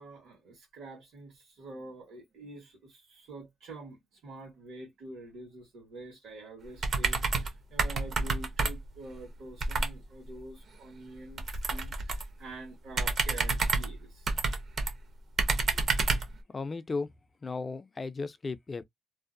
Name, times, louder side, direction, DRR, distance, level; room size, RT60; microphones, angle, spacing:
voice 1, 0.0-14.4, right 2 dB, 75° right, 1.3 m, -47 dB
sound 1, 6.8-7.5 7.8-9.0 9.6-10.0 11.4-12.3 12.9-14.9 15.4-16.3, right 3 dB, 50° right, 0.7 m, -29 dB
voice 2, 16.5-17.1 17.4-18.8, left 4 dB, 30° left, 0.4 m, -35 dB
2.6 x 2.0 x 2.5 m
cardioid pair, 90°, 0 cm